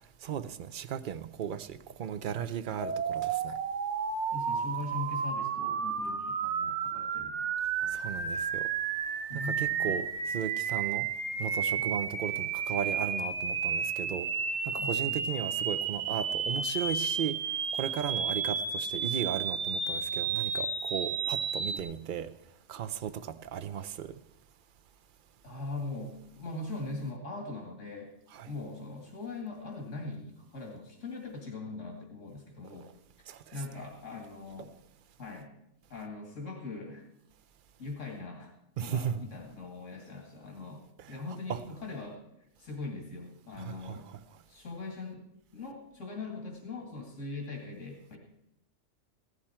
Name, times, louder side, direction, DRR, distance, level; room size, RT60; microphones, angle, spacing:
voice 1, 0.2-3.6 7.9-8.6 9.3-11.1 11.4-14.3 14.6-17.4 17.7-22.3 22.7-24.2 28.3-28.5 33.3-33.9 34.6-34.7 38.8-39.2 41.0-41.6 43.6-44.2, right 8 dB, 50° right, 0.7 m, -36 dB
sound 1, 2.8-21.8, right 6 dB, 70° right, 1.2 m, -32 dB
voice 2, 4.3-7.5 7.8-8.0 9.3-9.9 11.8-11.9 14.8-15.2 18.2-18.3 25.4-28.1 28.5-32.9 33.5-34.7 35.2-35.5 35.9-37.1 37.8-38.5 38.8-42.2 42.6-44.1 44.5-45.2 45.5-48.2, left 3 dB, 85° left, 2.5 m, -41 dB
16.0 x 12.5 x 4.4 m
omnidirectional pair, 1.3 m